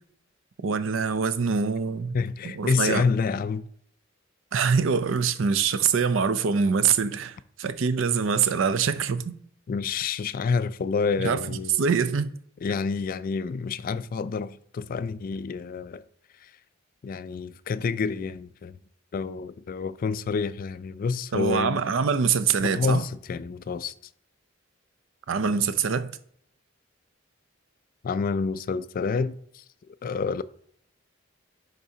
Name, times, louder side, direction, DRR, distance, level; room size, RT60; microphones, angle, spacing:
voice 1, 0.6-2.1 2.4-3.0 4.5-9.3 11.2-12.3 21.3-23.0 25.3-26.1, right 6 dB, 70° right, 0.5 m, -24 dB
voice 2, 2.1-3.6 9.7-11.8 12.6-16.0 16.4-16.5 17.0-18.8 19.1-21.8 22.6-23.9 28.0-29.6 30.0-30.4, left 5 dB, 45° left, 0.3 m, -28 dB
10.0 x 3.9 x 2.7 m
head